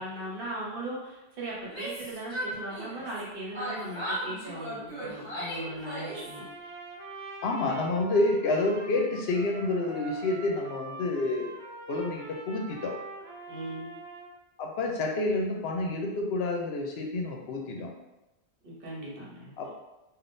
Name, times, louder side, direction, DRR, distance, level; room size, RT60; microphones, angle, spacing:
voice 1, 0.0-6.4 13.5-14.0 18.6-19.5, right 1 dB, 60° right, -5 dB, 1.1 m, -38 dB
Yell, 1.6-3.2 3.5-6.4, right 1 dB, 5° left, 1.4 m, -36 dB
Trumpet, 6.0-14.3, right 2 dB, 90° right, 0.9 m, -44 dB
voice 2, 7.4-11.5 11.9-12.9 14.6-17.9 19.6-19.7, left 2 dB, 75° left, 1 dB, 0.8 m, -29 dB
3.5 x 2.4 x 2.6 m, 0.95 s
omnidirectional pair, 1.1 m